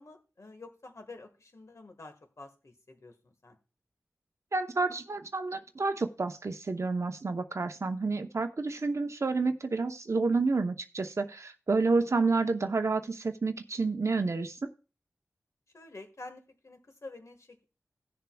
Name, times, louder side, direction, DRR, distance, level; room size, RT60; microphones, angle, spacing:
voice 1, 0.0-3.6 15.7-17.6, left 2 dB, 55° left, 6 dB, 1.6 m, -49 dB
voice 2, 4.5-14.7, right 3 dB, 55° right, 7 dB, 0.8 m, -29 dB
17.5 x 6.9 x 2.3 m, 0.34 s
wide cardioid pair, 60°, 6 cm